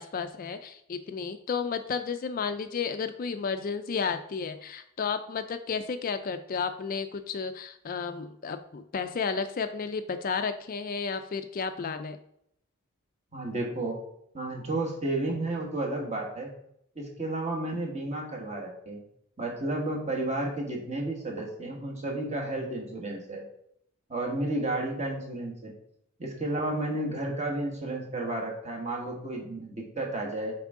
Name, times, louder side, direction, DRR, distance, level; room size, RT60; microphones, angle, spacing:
voice 1, 0.0-12.2, left 5 dB, 40° left, 9 dB, 0.4 m, -32 dB
voice 2, 13.3-14.0 14.3-16.5 16.9-19.0 19.4-23.4 24.1-25.7 26.2-30.5, right 2 dB, 30° right, 0 dB, 1.5 m, -32 dB
7.1 x 4.7 x 3.7 m, 0.73 s
head